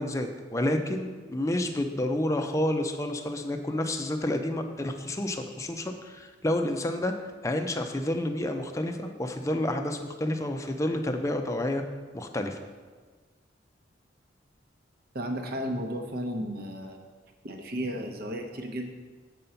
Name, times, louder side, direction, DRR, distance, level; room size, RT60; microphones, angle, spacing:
voice 1, 0.0-7.1 7.4-11.8 12.1-12.6, left 1 dB, 15° left, 5 dB, 0.5 m, -29 dB
voice 2, 15.1-17.0 17.4-18.9, equal, 55° right, 4 dB, 0.9 m, -33 dB
7.7 x 5.4 x 5.7 m, 1.4 s
head